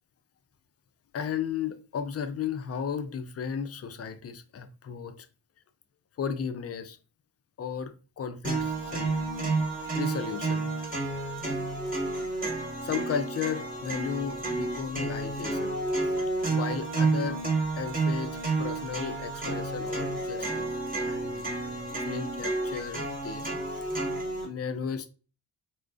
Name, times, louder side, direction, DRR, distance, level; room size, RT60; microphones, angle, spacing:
voice 1, 1.1-5.3 6.2-7.0 7.6-9.1 9.9-10.7 12.2-12.4 12.8-15.7 16.0-16.1 16.5-17.4 17.7-20.7 21.0-24.0 24.4-25.1, left 7 dB, 35° left, 0.4 m, -35 dB
sound 1, 8.4-24.4, right 3 dB, 20° right, 1.1 m, -30 dB
2.5 x 2.2 x 2.3 m
supercardioid pair, 45°, 47 cm